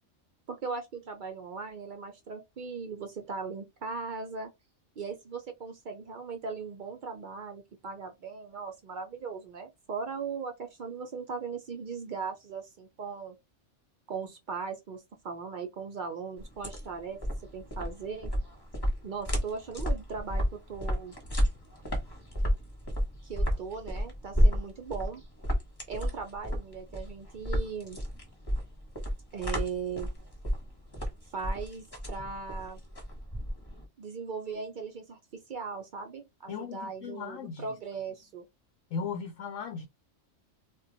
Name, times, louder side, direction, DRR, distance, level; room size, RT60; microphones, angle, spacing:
voice 1, 0.5-4.5 5.0-13.4 14.1-17.2 17.5-18.3 19.0-21.1 23.2-25.2 25.9-28.0 29.3-30.1 31.3-32.8 34.0-38.5, right 5 dB, 65° right, 0.5 m, -38 dB
sound 1, 16.4-33.8, equal, 20° left, 0.9 m, -31 dB
voice 2, 36.5-37.7 38.9-39.9, left 6 dB, 80° left, 0.9 m, -37 dB
2.3 x 2.2 x 3.8 m
omnidirectional pair, 1.4 m